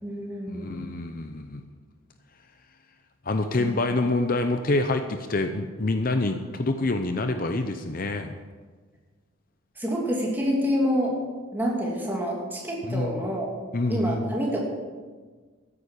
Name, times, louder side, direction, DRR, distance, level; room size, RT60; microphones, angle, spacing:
voice 1, 0.0-0.8 3.6-3.8 9.8-11.2 11.5-13.5 13.9-14.6, equal, 10° right, -3 dB, 2.9 m, -27 dB
voice 2, 0.5-1.6 3.3-8.3 12.8-13.2 13.7-14.2, left 2 dB, 45° left, 7 dB, 0.7 m, -26 dB
13.5 x 9.9 x 6.5 m, 1.4 s
head